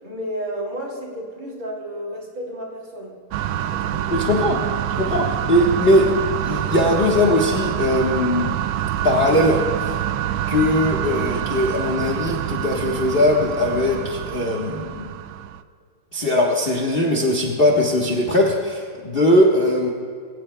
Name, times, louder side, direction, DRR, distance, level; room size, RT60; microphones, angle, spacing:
voice 1, 0.0-3.2 3.5-4.2, equal, 40° right, -1 dB, 2.9 m, -32 dB
sound 1, 3.3-15.6, right 11 dB, 75° right, 1.1 m, -26 dB
voice 2, 4.1-4.6 5.0-6.1 6.4-8.5 9.0-9.9 10.5-15.1 16.1-19.9, left 1 dB, 30° left, 0 dB, 1.2 m, -20 dB
22.0 x 17.5 x 2.2 m, 2.1 s
omnidirectional pair, 2.4 m